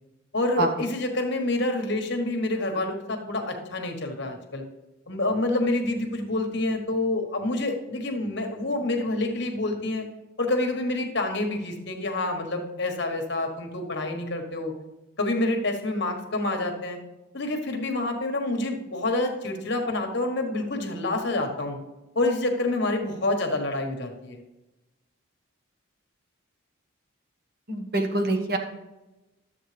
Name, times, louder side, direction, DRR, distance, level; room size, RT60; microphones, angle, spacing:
voice 1, 0.3-4.6 5.1-10.1 10.4-14.7 15.2-17.0 17.3-21.8 22.1-24.4, left 2 dB, 55° left, 4 dB, 1.2 m, -27 dB
voice 2, 27.7-28.6, right 2 dB, 45° right, 3 dB, 1.2 m, -25 dB
12.0 x 7.5 x 3.3 m, 1.0 s
head